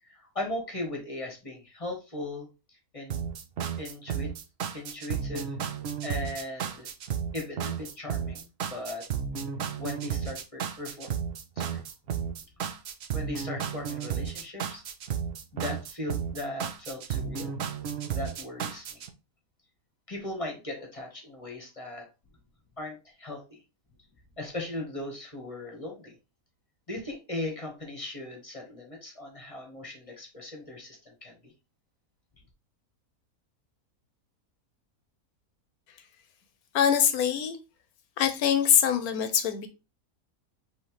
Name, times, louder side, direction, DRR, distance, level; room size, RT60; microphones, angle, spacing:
voice 1, 0.0-3.3 3.7-4.3 4.7-5.6 6.0-6.9 7.3-9.1 9.8-11.1 11.6-11.8 13.1-14.8 15.5-17.5 18.1-19.0 20.1-22.1 22.8-23.6 24.4-26.1 26.9-31.5, left 2 dB, 25° left, 1.0 m, -38 dB
sound 1, 3.1-19.1, right 8 dB, 60° right, 0.7 m, -33 dB
voice 2, 36.7-37.6 38.2-39.7, left 9 dB, 75° left, 1.1 m, -23 dB
5.6 x 3.1 x 3.0 m
omnidirectional pair, 1.6 m